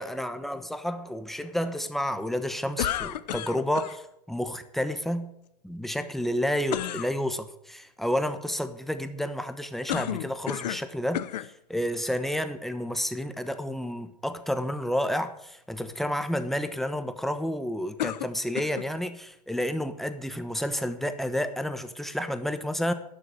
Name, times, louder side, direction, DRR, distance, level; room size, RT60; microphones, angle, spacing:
voice 1, 0.0-5.3 5.6-22.9, equal, ahead, 10 dB, 1.1 m, -30 dB
sound 1, 2.8-4.0 6.7-7.1 9.9-10.9 11.1-11.5 12.3-12.4 18.0-18.9, left 12 dB, 85° left, 0.8 m, -31 dB
12.0 x 6.7 x 9.3 m, 0.77 s
hypercardioid pair, 120°, 21 cm